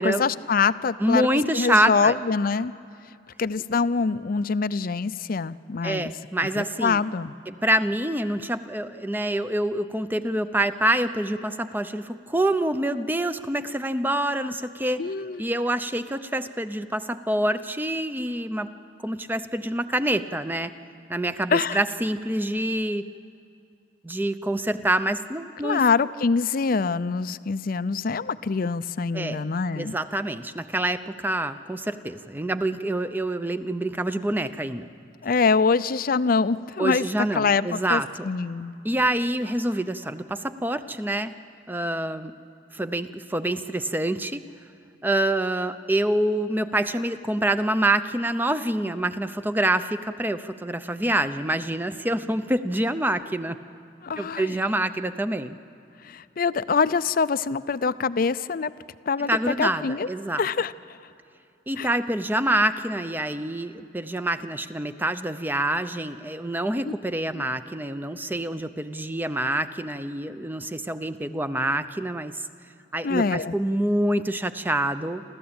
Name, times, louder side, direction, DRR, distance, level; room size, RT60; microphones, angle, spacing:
voice 1, 0.0-1.3 1.5-2.7 3.4-6.1 6.5-7.3 15.0-15.5 21.5-21.8 25.6-30.0 35.2-38.7 54.0-54.6 56.0-58.7 59.1-60.1 60.4-61.0 61.8-61.9 66.9-67.0 67.3-67.5 73.0-73.5, left 5 dB, 50° left, 15 dB, 0.5 m, -25 dB
voice 2, 1.0-2.1 5.8-7.0 7.5-15.0 15.4-18.7 19.0-20.7 21.1-23.0 24.0-25.8 29.1-29.4 29.8-34.8 36.8-38.3 38.8-41.3 41.7-42.3 42.7-44.4 45.0-53.6 54.2-55.6 59.3-60.4 61.7-72.4 72.9-75.2, right 1 dB, 10° right, 11 dB, 0.6 m, -26 dB
28.5 x 13.5 x 8.8 m, 2.6 s
head